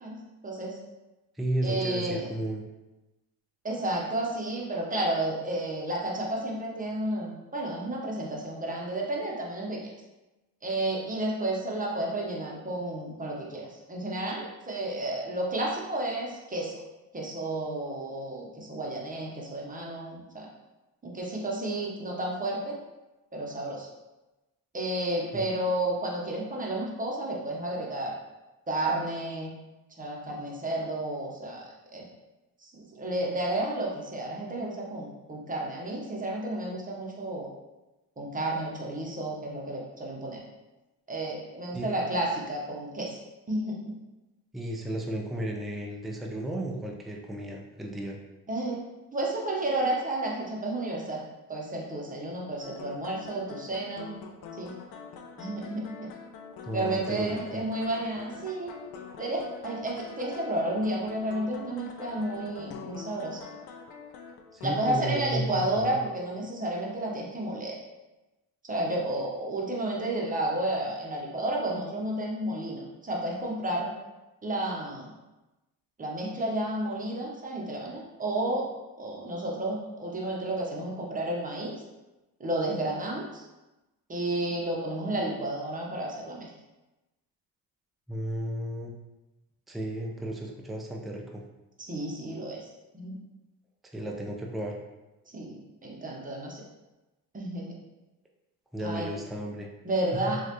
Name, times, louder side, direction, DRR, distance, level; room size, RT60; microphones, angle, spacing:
voice 1, 0.0-0.8 1.6-2.3 3.6-9.8 10.6-16.8 17.1-20.5 21.0-22.8 23.3-23.9 24.7-28.1 28.7-29.5 30.0-32.1 32.6-37.5 38.2-40.4 41.1-43.2 43.5-44.0 48.5-48.8 49.1-51.2 51.5-54.1 54.6-54.7 55.4-56.1 56.7-58.8 59.2-63.4 64.6-67.8 68.6-73.9 74.4-75.1 76.0-78.7 79.0-81.7 82.4-83.4 84.1-86.5 91.9-92.7 92.9-93.2 95.3-95.6 95.8-96.6 97.3-97.7 98.8-99.1 99.8-100.4, right 1 dB, 20° right, -2 dB, 0.8 m, -31 dB
voice 2, 1.4-2.6 25.3-25.4 41.7-42.0 44.5-48.2 56.6-57.7 64.5-66.0 88.1-88.9 89.7-91.4 93.9-94.8 98.7-99.7, right 1 dB, ahead, 0 dB, 0.4 m, -33 dB
sound 1, 52.6-64.9, left 6 dB, 60° left, 0.5 m, -45 dB
3.0 x 2.4 x 2.9 m, 1.0 s
supercardioid pair, 70°, 42 cm